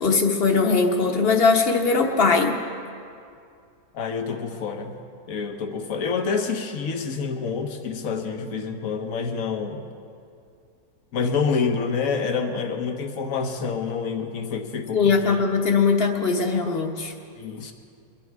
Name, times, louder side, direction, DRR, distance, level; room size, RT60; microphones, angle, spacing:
voice 1, 0.0-2.6 14.9-17.1, left 4 dB, 40° left, 3 dB, 1.3 m, -20 dB
voice 2, 3.9-5.0 5.3-9.8 11.1-15.4 17.4-17.7, left 5 dB, 60° left, 5 dB, 1.4 m, -27 dB
23.0 x 10.5 x 4.7 m, 2.4 s
omnidirectional pair, 1.6 m